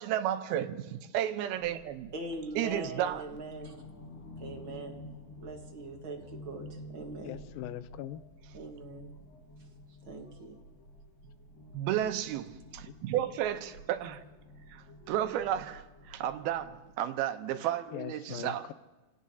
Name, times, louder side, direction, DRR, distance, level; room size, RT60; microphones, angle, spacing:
voice 1, 0.0-2.1 2.6-3.2 11.7-14.2 14.7-18.6, right 11 dB, 90° right, 2.7 m, -33 dB
sound 1, 1.5-17.0, left 1 dB, 45° left, 1.6 m, -50 dB
voice 2, 2.1-3.9 4.4-5.0 5.4-7.4 8.5-9.1 10.1-10.6, right 2 dB, 50° right, 1.6 m, -42 dB
voice 3, 7.2-8.2 12.9-13.0 17.9-18.7, left 12 dB, 80° left, 2.3 m, -41 dB
29.0 x 17.5 x 2.8 m
omnidirectional pair, 4.3 m